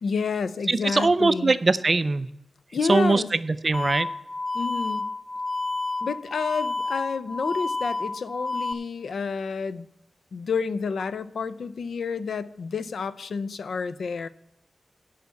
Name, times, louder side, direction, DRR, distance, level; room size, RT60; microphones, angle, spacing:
voice 1, 0.0-1.5 2.7-3.3 4.5-5.1 6.0-9.9 10.3-14.3, left 5 dB, 85° left, 14 dB, 0.5 m, -29 dB
voice 2, 0.7-2.3 2.9-4.1, right 3 dB, 40° right, 14 dB, 0.5 m, -22 dB
sound 1, 3.7-8.7, left 3 dB, 30° left, 0.5 m, -30 dB
9.5 x 5.8 x 8.3 m, 0.80 s
wide cardioid pair, 85°, 0 cm